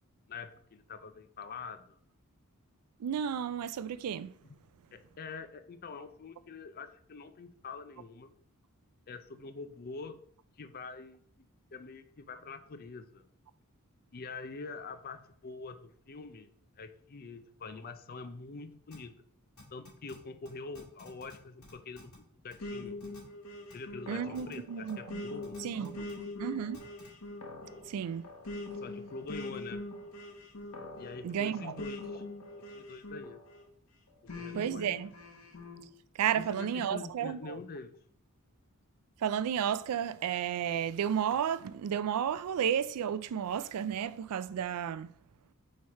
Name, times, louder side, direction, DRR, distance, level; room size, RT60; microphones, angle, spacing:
voice 1, 0.3-2.0 4.4-4.6 4.9-8.3 9.1-10.2 10.6-13.3 14.1-16.5 16.8-19.1 19.7-23.0 23.7-25.6 25.9-26.3 28.8-29.8 31.0-32.2 32.7-33.4 34.2-34.8 36.3-37.9, left 4 dB, 40° left, 0.5 m, -45 dB
voice 2, 3.0-4.3 24.1-25.2 25.6-26.1 26.4-26.8 27.9-28.3 31.2-31.7 34.5-35.1 36.2-37.6 39.2-45.1, right 8 dB, 85° right, 0.4 m, -32 dB
sound 1, 18.9-19.0 19.6-20.2 20.4-20.5 20.7-21.3 21.6-22.2 22.5-22.6 23.0-23.2 23.7-23.8 24.3-24.5 24.9-25.0 25.4-26.1 26.7-27.1, left 3 dB, 90° left, 2.7 m, -53 dB
sound 2, 22.6-33.7 34.3-35.8, left 2 dB, 65° left, 1.2 m, -43 dB
4.7 x 4.4 x 4.6 m
head